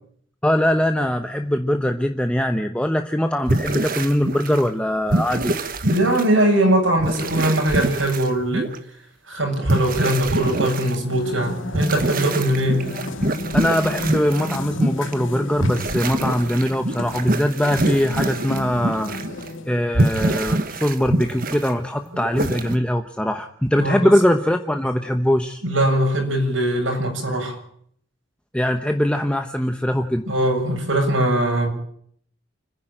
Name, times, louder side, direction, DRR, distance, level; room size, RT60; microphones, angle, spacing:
voice 1, 0.4-5.5 13.5-19.1 19.7-25.6 28.5-30.2, equal, 5° left, 5 dB, 0.9 m, -21 dB
sound 1, 3.5-4.7 5.1-6.3 7.0-8.8 9.6-11.0 11.7-15.1 15.6-19.5 19.7-21.7 22.1-22.8, right 1 dB, 45° right, 1.4 m, -25 dB
voice 2, 5.8-8.7 9.3-12.9 23.8-24.1 25.6-27.6 30.3-31.7, right 1 dB, 80° right, 2 dB, 7.4 m, -21 dB
sound 2, 10.9-19.8, left 2 dB, 85° left, 2.1 m, -33 dB
29.5 x 10.5 x 9.0 m, 0.64 s
head